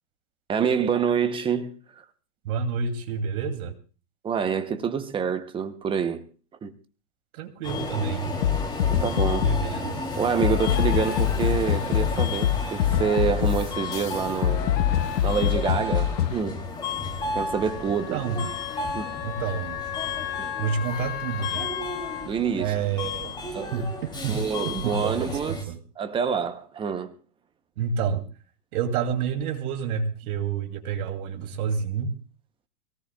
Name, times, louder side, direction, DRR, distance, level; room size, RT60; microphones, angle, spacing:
voice 1, 0.5-2.0 4.2-6.3 6.6-6.7 8.9-9.5 10.2-14.7 15.2-16.6 17.3-18.2 18.9-19.1 20.4-20.5 22.2-22.7 23.5-23.9 24.3-25.6 26.0-27.1, right 7 dB, 10° right, 0.7 m, -27 dB
voice 2, 2.4-3.7 7.3-8.4 9.4-10.0 18.1-18.5 19.2-19.8 20.6-21.7 22.6-23.3 23.7-24.4 24.6-25.8 27.8-28.2 28.7-32.1, right 6 dB, 60° right, 2.7 m, -29 dB
Subway metro underground, 7.6-25.6, left 3 dB, 10° left, 2.7 m, -33 dB
sound 1, 8.4-9.7 10.4-16.4, left 10 dB, 80° left, 1.2 m, -24 dB
Wind instrument woodwind instrument, 17.2-22.3, left 13 dB, 40° left, 1.9 m, -36 dB
24.0 x 18.0 x 2.3 m
hypercardioid pair, 140°, 49 cm